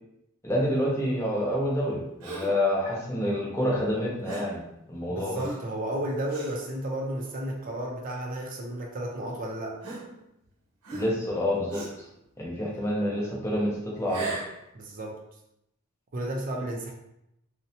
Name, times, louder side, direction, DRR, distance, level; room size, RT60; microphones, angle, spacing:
voice 1, 0.4-4.6 4.9-5.4 10.9-11.8 12.4-13.7 14.0-14.4, equal, 10° left, -4 dB, 0.5 m, -27 dB
Gasp, 2.2-2.7 4.2-4.6 5.3-5.7 6.3-6.6 7.3-7.4 8.5-8.6 9.8-10.5 10.8-11.3 11.7-12.1 14.0-14.6, right 2 dB, 90° right, 0.7 m, -38 dB
voice 2, 5.1-9.7 14.7-15.2 16.1-16.9, right 1 dB, 40° right, -1 dB, 0.4 m, -32 dB
2.6 x 2.0 x 2.7 m, 0.82 s
head